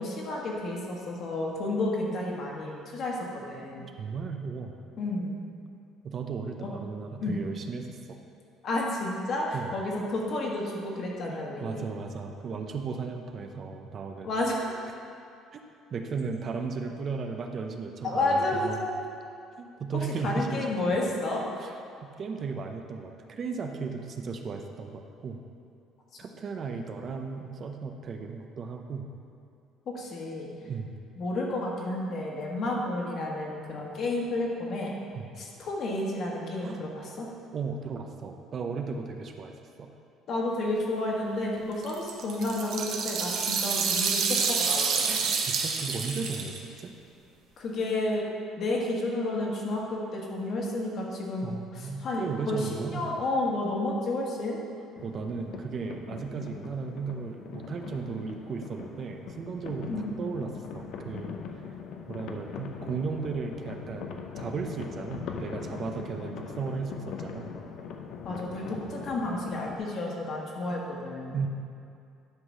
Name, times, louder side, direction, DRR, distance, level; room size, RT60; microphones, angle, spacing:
voice 1, 0.0-3.2 3.5-3.8 5.0-5.4 6.6-6.7 7.2-7.4 8.6-11.9 14.2-14.7 18.0-19.0 20.2-21.4 29.9-30.5 31.2-34.9 35.4-37.3 40.3-45.2 47.6-48.2 48.6-54.6 59.9-60.1 68.2-71.4, left 2 dB, 50° left, -2 dB, 1.6 m, -31 dB
voice 2, 4.0-4.7 6.0-8.2 9.5-9.7 11.3-14.3 15.5-15.6 15.9-18.8 19.6-20.7 21.6-21.8 22.2-25.4 26.2-29.1 30.6-30.9 35.1-35.3 36.6-36.8 37.5-39.9 45.1-46.9 51.4-53.1 55.0-61.4 62.0-67.5 71.3-71.5, right 5 dB, 40° right, 4 dB, 0.6 m, -35 dB
sound 1, 41.6-41.7 41.8-46.8, right 5 dB, 65° right, 1.0 m, -28 dB
sound 2, 55.0-69.8, left 6 dB, 70° left, 0.7 m, -41 dB
10.5 x 4.0 x 6.3 m, 2.5 s
cardioid pair, 135°, 0 cm